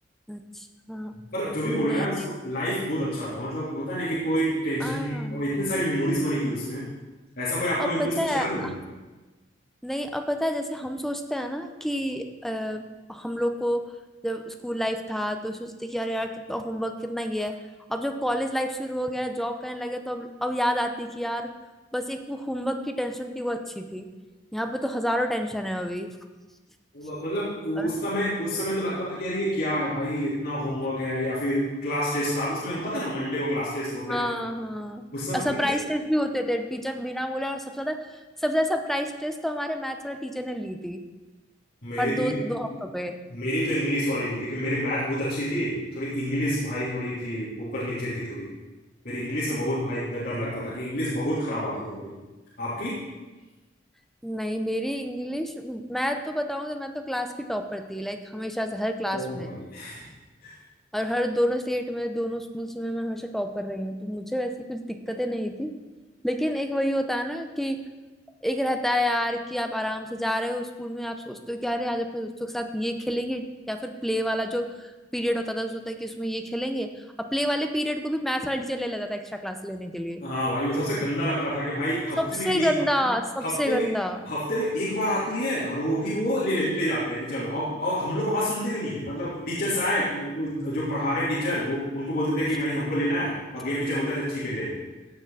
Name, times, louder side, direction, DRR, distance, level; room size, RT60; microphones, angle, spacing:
voice 1, 0.3-1.1 1.7-2.3 4.8-5.4 7.8-8.7 9.8-13.9 14.2-17.6 17.9-21.5 21.9-24.1 24.5-26.2 27.8-27.9 34.1-35.0 35.3-41.0 42.0-43.2 54.2-59.5 60.9-65.7 66.2-67.9 68.4-76.9 77.2-80.2 82.2-84.2, equal, ahead, 5 dB, 0.8 m, -29 dB
voice 2, 1.3-6.8 7.4-8.7 26.9-34.2 35.1-35.7 41.8-42.3 43.3-48.5 49.0-52.1 52.6-53.0 59.1-60.0 60.4-60.5 80.2-82.8 83.4-83.8 84.3-94.8, equal, 60° left, -12 dB, 3.7 m, -28 dB
16.5 x 6.8 x 4.1 m, 1.2 s
head